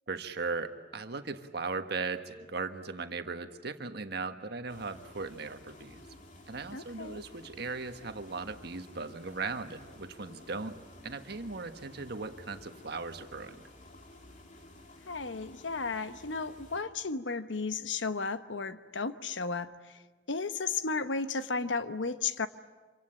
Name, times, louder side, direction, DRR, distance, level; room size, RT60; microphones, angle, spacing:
voice 1, 0.1-6.0 6.5-10.7 11.0-13.6, right 4 dB, 60° right, 8 dB, 1.5 m, -38 dB
sound 1, 4.7-16.8, left 1 dB, 45° left, 3.1 m, -53 dB
voice 2, 6.7-7.2 15.1-20.0 20.3-22.5, left 4 dB, 85° left, 11 dB, 1.0 m, -34 dB
26.5 x 24.5 x 8.8 m, 1.3 s
head